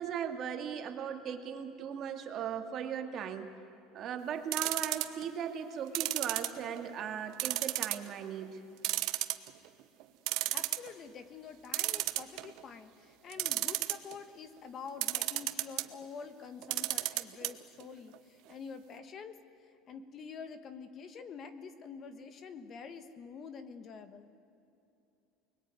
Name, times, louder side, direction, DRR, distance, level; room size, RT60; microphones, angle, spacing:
voice 1, 0.0-3.5 3.9-8.6, right 8 dB, 35° right, 6 dB, 2.1 m, -38 dB
sound 1, 4.5-5.2 5.9-6.9 7.4-8.1 8.4-8.5 8.8-9.7 10.0-10.1 10.3-10.9 11.7-12.6 13.3-14.1 15.0-15.9 16.6-17.5 17.8-17.9 18.1-18.2, right 19 dB, 55° right, 1.2 m, -32 dB
voice 2, 10.5-19.4 19.9-24.3, left 5 dB, 30° left, 11 dB, 1.3 m, -47 dB
29.0 x 21.0 x 9.5 m, 2.8 s
cardioid pair, 165°, 0 cm